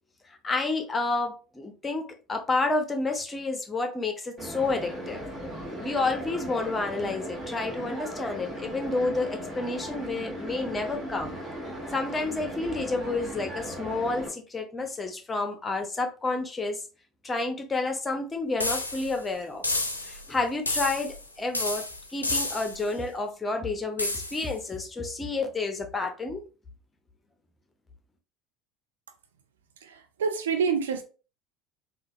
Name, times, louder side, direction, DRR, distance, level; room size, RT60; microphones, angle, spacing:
voice 1, 0.4-5.2 5.8-11.3 11.9-16.8 17.2-19.6 20.0-21.8 22.1-26.4, left 3 dB, 20° left, 0.7 m, -30 dB
sound 1, 4.4-14.3, equal, 20° right, 1.7 m, -37 dB
sound 2, 18.6-19.2 19.6-20.3 20.7-21.2 21.5-22.9 24.0-24.5, left 2 dB, 90° left, 0.4 m, -30 dB
voice 2, 29.8-31.0, right 6 dB, 75° right, 0.4 m, -27 dB
3.8 x 2.4 x 2.7 m
figure-of-eight pair, 70°, 0 cm